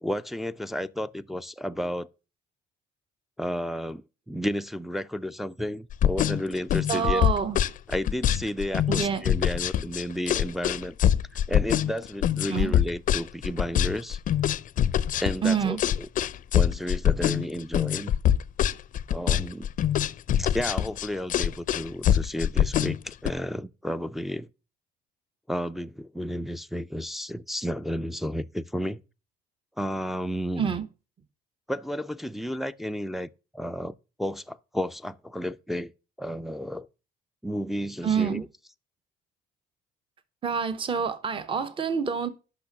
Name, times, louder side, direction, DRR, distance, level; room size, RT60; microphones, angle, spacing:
voice 1, 0.0-2.1 3.4-7.2 7.9-11.0 11.5-14.2 15.2-15.8 16.5-18.1 19.1-19.7 20.4-24.5 25.5-29.0 29.8-30.6 31.7-33.9 34.2-35.9 36.2-36.9 37.4-38.4, equal, ahead, 0.4 m, -32 dB
sound 1, 5.9-23.3, left 10 dB, 50° left, 0.5 m, -24 dB
voice 2, 6.9-7.6 8.9-9.3 12.5-12.8 15.4-15.8 30.6-30.9 38.0-38.5 40.4-42.3, right 6 dB, 30° right, 0.9 m, -27 dB
8.6 x 6.0 x 5.9 m
cardioid pair, 110°, 17 cm